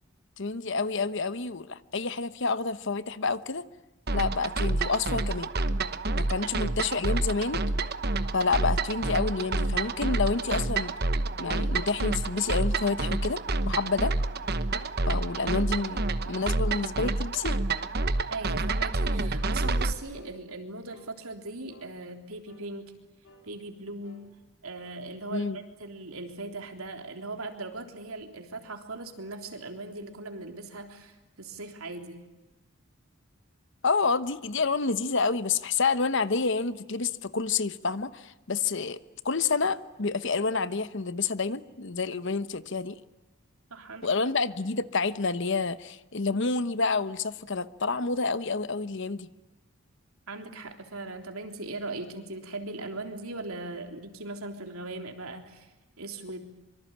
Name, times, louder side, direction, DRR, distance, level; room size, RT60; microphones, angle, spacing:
voice 1, 0.4-3.7 4.1-5.5 6.1-7.6 8.3-10.9 11.4-14.1 15.1-17.6 25.3-25.6 33.8-39.0 39.2-43.0 44.0-49.3, left 4 dB, 55° left, 14 dB, 1.0 m, -29 dB
sound 1, 4.1-19.9, right 2 dB, 45° right, 1.1 m, -28 dB
sound 2, 13.1-13.4 13.9-14.1 14.7-14.9 15.4-15.7 16.2-16.5 17.0-17.3 17.8-18.0 18.6-18.8 19.4-19.6 20.1-20.4 20.9-21.1 21.7-21.9 22.5-22.7 23.2-23.5 24.0-24.3 24.8-25.0, equal, 75° left, 4.7 m, -54 dB
voice 2, 18.3-22.9 23.4-24.3 24.6-32.2 43.7-44.1 50.3-56.4, right 2 dB, 80° right, 5 dB, 3.5 m, -39 dB
25.5 x 24.5 x 8.9 m, 1.1 s
head